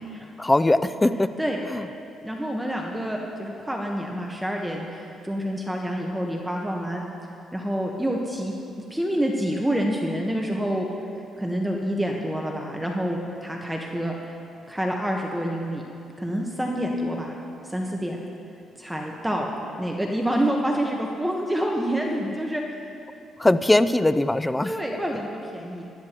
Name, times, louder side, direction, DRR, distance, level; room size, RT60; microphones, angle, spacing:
voice 1, 0.4-1.3 1.7-1.9 23.4-24.7, left 1 dB, 15° left, 13 dB, 0.5 m, -20 dB
voice 2, 2.2-7.0 7.5-8.5 8.9-10.9 11.4-14.4 14.7-15.8 16.2-17.3 17.6-18.2 18.8-19.5 19.8-22.6 24.6-25.8, equal, 5° right, 0 dB, 1.2 m, -27 dB
19.5 x 13.0 x 3.0 m, 2.6 s
cardioid pair, 90°, 0 cm